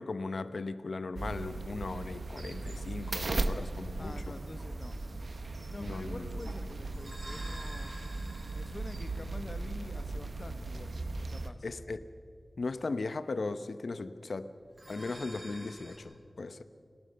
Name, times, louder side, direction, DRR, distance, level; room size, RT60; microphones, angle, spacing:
voice 1, 0.0-4.3 5.8-6.4 11.6-12.1 12.6-14.5 14.9-16.6, left 3 dB, 90° left, 12 dB, 0.8 m, -37 dB
sound 1, 1.2-11.5, right 2 dB, 70° right, 1.0 m, -37 dB
voice 2, 4.0-5.0 5.7-7.9 8.4-11.7, left 2 dB, 40° left, 9 dB, 1.2 m, -47 dB
sound 2, 4.4-10.9 14.6-16.0, right 1 dB, 50° right, 5.3 m, -50 dB
29.5 x 13.0 x 6.8 m, 2.4 s
wide cardioid pair, 70°, 0 cm